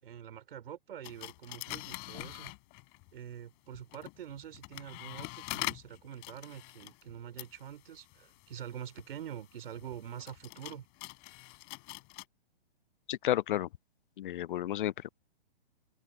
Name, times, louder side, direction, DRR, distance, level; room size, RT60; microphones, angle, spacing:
voice 1, 0.0-2.6 3.1-10.9, right 9 dB, 65° right, 4.5 m, -45 dB
sound 1, 1.0-3.1 3.7-12.3, left 30 dB, 30° left, 6.9 m, -44 dB
voice 2, 13.1-13.7 14.2-15.1, left 13 dB, 55° left, 0.5 m, -32 dB
open air
hypercardioid pair, 145°, 31 cm